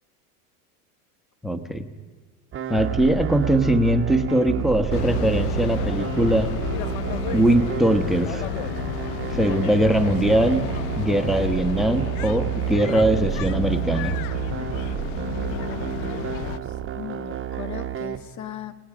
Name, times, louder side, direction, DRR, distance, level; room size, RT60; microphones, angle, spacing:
voice 1, 1.4-1.9 2.7-6.5 7.3-8.4 9.3-10.6 11.0-14.2, right 1 dB, ahead, 9 dB, 1.2 m, -21 dB
sound 1, 2.5-18.2, right 11 dB, 25° right, 1.2 m, -30 dB
sound 2, 4.9-16.6, left 13 dB, 60° left, 0.9 m, -32 dB
voice 2, 15.5-16.6 16.9-18.7, left 9 dB, 40° left, 10 dB, 1.5 m, -38 dB
29.5 x 19.0 x 5.1 m, 1.4 s
hypercardioid pair, 105°, 47 cm